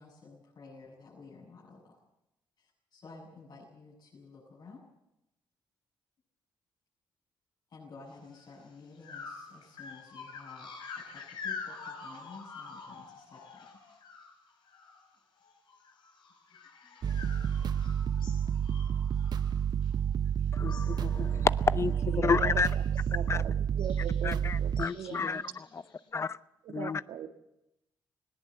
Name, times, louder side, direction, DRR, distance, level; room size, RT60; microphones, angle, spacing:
voice 1, 0.0-2.0 2.6-4.8 7.7-13.7 15.2-15.3 16.5-17.2 17.5-20.0 23.2-23.6 25.6-26.2, left 4 dB, 55° left, 7.4 m, -53 dB
sound 1, 8.4-8.5 9.0-15.1 15.4-20.2 20.5-21.0 21.3-21.6 21.9-23.2 23.8-24.3 24.8-26.0, left 5 dB, 70° left, 5.4 m, -47 dB
sound 2, 17.0-24.9, right 8 dB, 55° right, 0.7 m, -30 dB
voice 2, 20.5-22.7 23.3-23.4 24.2-25.4 26.1-26.4 26.7-27.0, left 5 dB, 35° left, 0.7 m, -30 dB
voice 3, 22.1-22.7 23.1-25.4 26.6-27.3, right 9 dB, 80° right, 1.8 m, -41 dB
20.0 x 18.0 x 7.7 m
cardioid pair, 105°, 9 cm